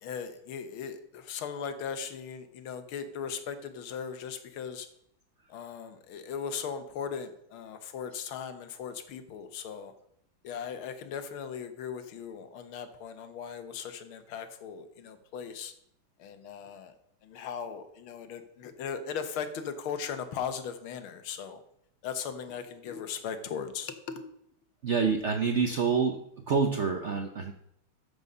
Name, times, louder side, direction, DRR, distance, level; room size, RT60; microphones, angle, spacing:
voice 1, 0.0-4.9 5.5-9.9 10.4-15.7 16.2-16.9 17.2-21.6 22.0-24.2, left 7 dB, 85° left, 9 dB, 1.8 m, -38 dB
voice 2, 24.8-27.5, right 5 dB, 60° right, 4 dB, 0.7 m, -27 dB
13.5 x 5.3 x 5.4 m, 0.74 s
omnidirectional pair, 2.2 m